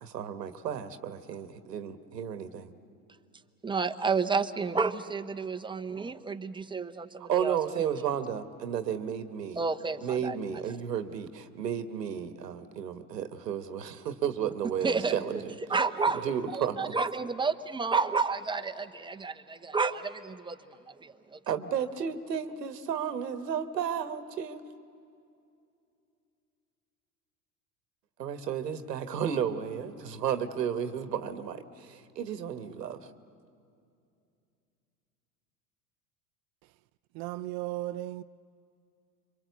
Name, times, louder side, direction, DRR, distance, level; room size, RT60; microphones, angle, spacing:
voice 1, 0.0-2.7 7.3-9.6 10.0-15.5 16.2-17.0 21.5-24.6 28.2-33.1, right 8 dB, 85° right, 1.3 m, -33 dB
voice 2, 3.6-8.0 9.6-10.6 14.8-15.4 15.7-21.4, right 4 dB, 10° right, 0.9 m, -31 dB
voice 3, 37.1-38.2, right 16 dB, 45° right, 0.6 m, -35 dB
26.5 x 24.5 x 8.1 m
hypercardioid pair, 85°, 48 cm